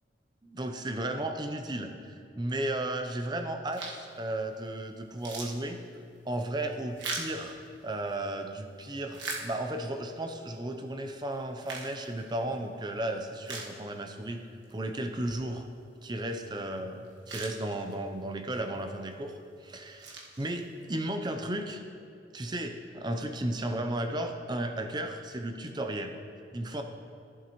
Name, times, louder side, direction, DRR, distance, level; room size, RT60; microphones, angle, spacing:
voice 1, 0.4-5.8 6.2-14.4 14.7-15.6 16.0-21.8 22.3-26.1 26.5-26.8, right 1 dB, 25° right, 6 dB, 0.6 m, -34 dB
sound 1, 3.7-4.2 4.6-4.7 5.0-8.2 8.7-10.0 10.5-10.6 11.3-12.7 13.1-13.2 13.4-14.3 14.6-14.7 16.7-16.8 17.0-18.2 18.8-19.1 19.7-20.9, right 3 dB, 90° right, 1.5 m, -41 dB
14.5 x 7.4 x 3.0 m, 2.4 s
head